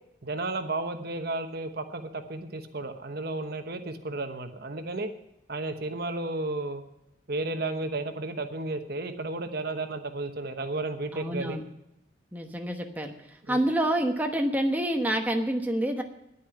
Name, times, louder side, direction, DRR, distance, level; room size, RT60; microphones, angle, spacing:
voice 1, 0.2-5.1 5.5-6.8 7.3-11.6 13.5-13.6, right 2 dB, 55° right, 7 dB, 1.1 m, -33 dB
voice 2, 11.1-11.6 12.3-13.1 13.5-16.0, right 1 dB, 10° right, 3 dB, 1.1 m, -27 dB
10.0 x 9.6 x 8.8 m, 0.87 s
head